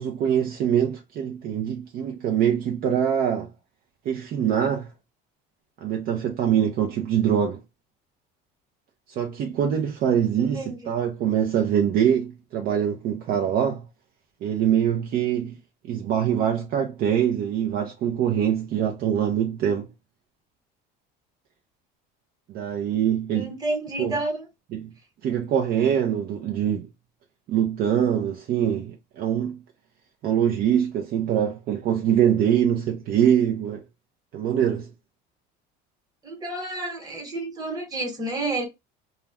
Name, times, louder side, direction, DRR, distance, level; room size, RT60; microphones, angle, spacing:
voice 1, 0.0-3.5 4.1-4.9 5.8-7.6 9.1-13.9 14.4-15.6 15.8-19.9 22.5-23.5 24.0-24.2 24.7-24.9 25.2-26.9 27.5-29.6 30.2-33.8 34.3-34.9, right 9 dB, 50° right, 0.5 m, -24 dB
voice 2, 10.4-10.9 23.3-24.5 36.2-38.7, right 2 dB, 20° right, 1.1 m, -30 dB
2.4 x 2.1 x 3.3 m
cardioid pair, 125°, 20 cm